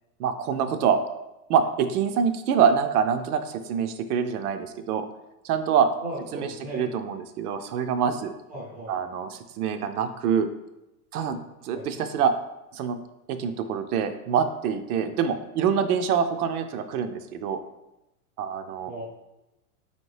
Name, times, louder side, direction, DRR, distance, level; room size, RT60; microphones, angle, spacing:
voice 1, 0.2-1.0 1.5-5.1 5.4-5.9 6.3-8.3 8.9-10.5 11.1-12.3 12.7-13.0 13.3-17.6 18.4-18.9, right 7 dB, 75° right, 9 dB, 0.6 m, -25 dB
voice 2, 6.0-6.8 8.5-8.9 11.7-11.8 18.9-19.0, right 1 dB, 5° right, -6 dB, 0.4 m, -36 dB
4.3 x 2.9 x 3.1 m, 0.94 s
supercardioid pair, 150°, 45 cm